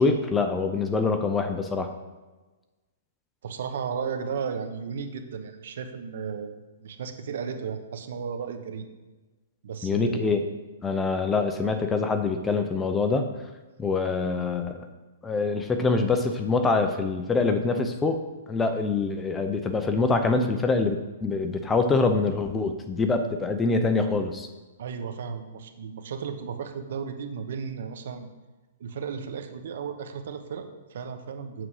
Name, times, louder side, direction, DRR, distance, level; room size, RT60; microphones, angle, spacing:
voice 1, 0.0-1.9 9.8-10.4 10.8-13.3 13.8-14.8 15.2-18.2 18.5-24.5, left 4 dB, 10° left, 6 dB, 0.6 m, -25 dB
voice 2, 3.4-8.8 9.6-10.5 24.8-28.3 28.8-31.7, right 6 dB, 65° right, 8 dB, 1.1 m, -34 dB
7.7 x 7.4 x 4.8 m, 1.2 s
hypercardioid pair, 160°, 0 cm